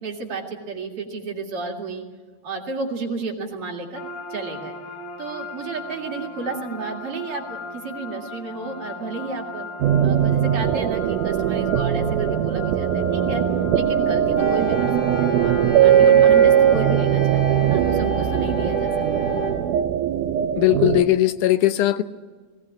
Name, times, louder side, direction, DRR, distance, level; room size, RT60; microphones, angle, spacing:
voice 1, 0.0-2.0 2.4-4.0 4.3-4.8 5.2-9.7 10.0-13.4 13.7-14.9 15.2-18.9, right 3 dB, 50° right, 2 dB, 2.9 m, -31 dB
sound 1, 3.9-17.1, left 3 dB, 65° left, 2.9 m, -37 dB
sound 2, 9.8-21.0, right 10 dB, 85° right, 2.4 m, -20 dB
sound 3, 14.4-19.5, right 2 dB, 40° left, 5.9 m, -29 dB
voice 2, 20.6-22.0, left 14 dB, 85° left, 11 dB, 2.4 m, -18 dB
19.0 x 18.5 x 8.6 m, 1.3 s
omnidirectional pair, 3.5 m